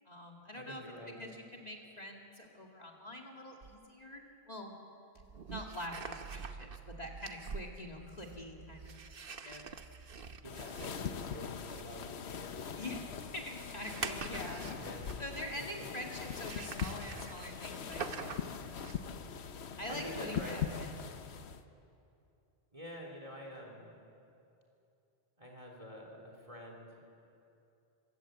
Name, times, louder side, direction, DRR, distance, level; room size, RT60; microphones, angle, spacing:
voice 1, 0.1-0.8 1.2-4.2 4.5-4.7 5.5-8.9 9.4-9.6 12.8-14.7 15.2-18.8 19.8-20.9, left 1 dB, 40° left, 0 dB, 2.3 m, -45 dB
voice 2, 0.6-1.1 10.4-12.0 12.4-12.6 14.7-15.1 15.6-15.8 19.9-20.6 22.7-24.0 25.4-27.0, equal, 35° right, 0 dB, 3.5 m, -47 dB
sound 1, 3.6-3.7 5.2-15.5 16.2-19.2, right 5 dB, 60° right, 1.1 m, -46 dB
sound 2, 10.4-21.6, left 7 dB, 90° left, 1.2 m, -41 dB
26.0 x 17.0 x 8.1 m, 2.7 s
omnidirectional pair, 1.1 m